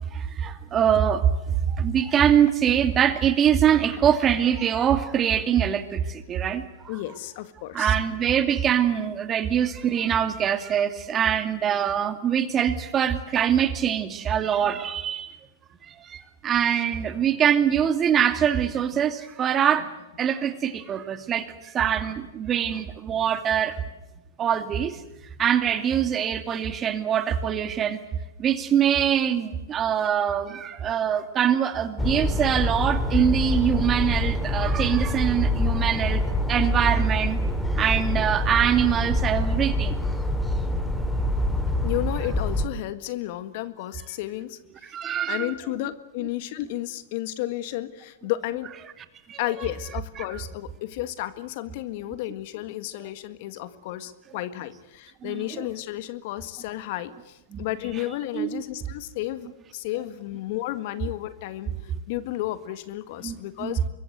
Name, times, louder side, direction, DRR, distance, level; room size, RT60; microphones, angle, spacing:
voice 1, 0.1-1.3 1.6-6.6 7.7-15.3 15.9-19.9 20.2-23.8 24.4-25.0 25.4-28.0 28.4-36.2 36.5-37.4 37.8-39.9 44.8-45.5 49.3-49.4 50.2-50.3 55.2-55.6 57.5-57.6 58.3-58.6 63.2-63.8, right 9 dB, 25° right, 9 dB, 2.5 m, -23 dB
voice 2, 6.9-8.0 41.8-44.6 45.3-48.7 49.4-63.8, left 15 dB, 55° left, 12 dB, 1.7 m, -32 dB
sound 1, 32.0-42.7, left 1 dB, 5° left, 2.9 m, -25 dB
25.5 x 22.5 x 8.0 m, 1.0 s
hypercardioid pair, 110°, 0 cm